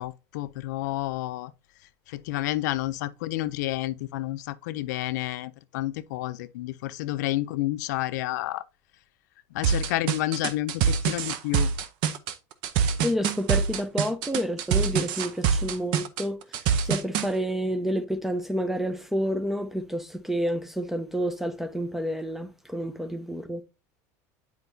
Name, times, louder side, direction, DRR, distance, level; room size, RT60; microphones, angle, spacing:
voice 1, 0.0-1.5 2.1-8.6 9.5-11.7, left 16 dB, 85° left, 0.4 m, -30 dB
sound 1, 9.6-17.3, right 7 dB, 60° right, 0.6 m, -25 dB
voice 2, 13.0-23.6, equal, 5° right, 0.6 m, -29 dB
8.1 x 4.5 x 2.7 m
supercardioid pair, 120°, 9 cm